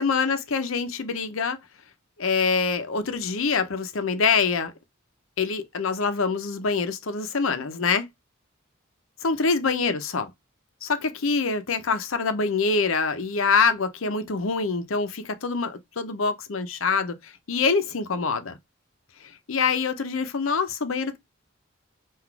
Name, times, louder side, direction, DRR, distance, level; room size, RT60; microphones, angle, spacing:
voice 1, 0.0-1.6 2.2-4.7 5.4-8.1 9.2-10.3 10.8-18.6 19.2-21.2, left 4 dB, 75° left, 0.7 m, -25 dB
4.0 x 2.5 x 4.5 m
head